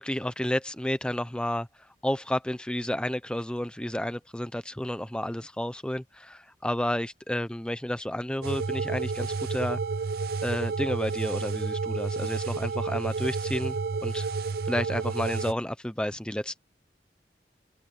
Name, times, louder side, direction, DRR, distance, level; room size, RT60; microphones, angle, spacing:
voice 1, 0.0-9.8 10.4-14.3 14.6-16.6, left 1 dB, 5° left, 0.6 m, -31 dB
sound 1, 8.4-15.5, right 4 dB, 55° right, 0.4 m, -30 dB
open air
head